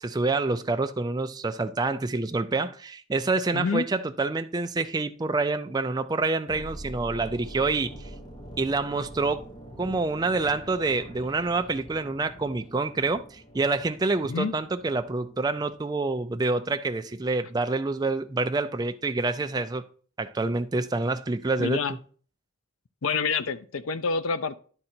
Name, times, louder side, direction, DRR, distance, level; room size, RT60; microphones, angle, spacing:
voice 1, 0.0-8.1 8.6-9.5 9.8-19.8 20.2-21.8, right 3 dB, 20° right, 0.3 m, -27 dB
voice 2, 3.5-3.9 14.3-14.5 21.6-21.9 23.0-24.5, left 5 dB, 70° left, 0.5 m, -27 dB
sound 1, 6.5-16.5 16.7-17.0, equal, 20° left, 1.2 m, -45 dB
11.0 x 3.8 x 4.3 m
head